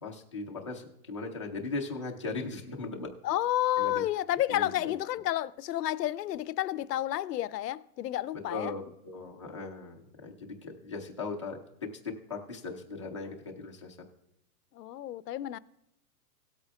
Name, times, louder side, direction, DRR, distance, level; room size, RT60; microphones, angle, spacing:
voice 1, 0.0-3.1 3.8-4.1 4.5-4.9 8.5-14.0, left 3 dB, 20° left, 0.4 m, -38 dB
voice 2, 3.2-8.7 14.7-15.6, left 13 dB, 80° left, 0.6 m, -30 dB
18.0 x 8.2 x 2.2 m
hypercardioid pair, 170°, 48 cm